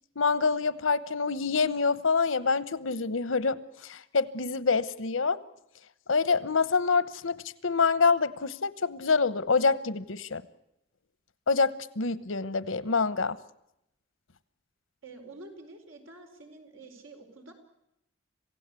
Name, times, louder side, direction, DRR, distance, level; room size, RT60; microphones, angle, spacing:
voice 1, 0.2-5.4 6.1-10.4 11.5-13.4, left 4 dB, 85° left, 17 dB, 1.0 m, -26 dB
voice 2, 15.0-17.5, right 2 dB, 90° right, 4 dB, 4.6 m, -48 dB
26.5 x 16.5 x 8.4 m, 0.85 s
head